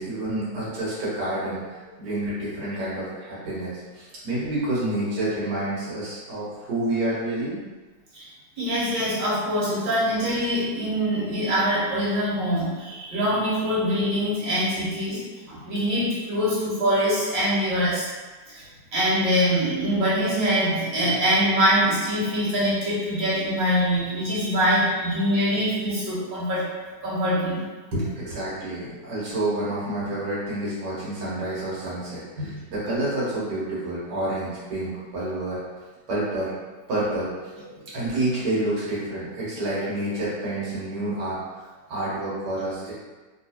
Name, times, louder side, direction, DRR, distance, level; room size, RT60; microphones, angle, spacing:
voice 1, 0.0-7.6 27.9-35.6 36.1-36.5 36.9-37.3 37.9-42.9, right 1 dB, 70° right, -9 dB, 1.7 m, -28 dB
voice 2, 8.6-15.2 15.5-18.1 18.5-18.6 18.9-26.7 27.0-27.6 32.4-32.5, equal, 85° right, -9 dB, 1.8 m, -24 dB
3.1 x 3.0 x 2.8 m, 1.3 s
omnidirectional pair, 1.9 m